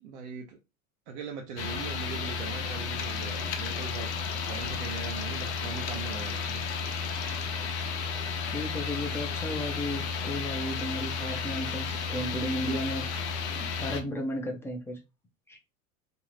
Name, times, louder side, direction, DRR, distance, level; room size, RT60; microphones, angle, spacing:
voice 1, 0.0-0.6 1.1-4.1 4.5-6.7, right 6 dB, 55° right, 0.6 m, -40 dB
sound 1, 1.6-14.0, left 5 dB, 55° left, 0.6 m, -33 dB
voice 2, 8.5-13.3 13.8-15.0 15.5-15.6, equal, 5° left, 0.5 m, -34 dB
2.7 x 2.6 x 3.1 m
figure-of-eight pair, 80°, 42 cm